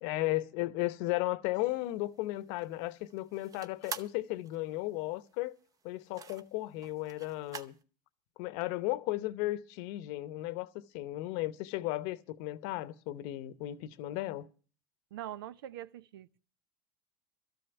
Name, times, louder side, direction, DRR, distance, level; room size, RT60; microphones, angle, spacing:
voice 1, 0.0-5.5 5.8-7.7 8.4-14.5, left 17 dB, 65° left, 0.9 m, -35 dB
sound 1, 1.5-7.8, right 6 dB, 30° right, 0.8 m, -48 dB
voice 2, 15.1-16.4, right 12 dB, 85° right, 0.6 m, -43 dB
13.0 x 7.8 x 8.2 m
supercardioid pair, 110°, 12 cm